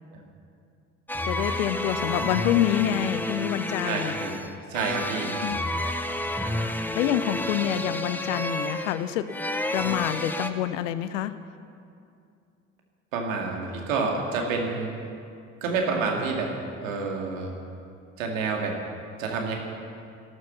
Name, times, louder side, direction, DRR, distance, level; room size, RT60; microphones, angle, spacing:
sound 1, 1.1-10.5, left 1 dB, 5° left, 1.1 m, -30 dB
voice 1, 1.3-4.2 5.4-5.6 6.9-11.3, left 11 dB, 70° left, 13 dB, 0.8 m, -27 dB
voice 2, 3.8-4.3 4.7-5.4 13.1-14.9 15.6-16.5 16.8-17.5 18.2-18.7 19.2-19.5, right 4 dB, 75° right, 1 dB, 2.2 m, -28 dB
14.5 x 12.5 x 7.0 m, 2.5 s
figure-of-eight pair, 50°, 40 cm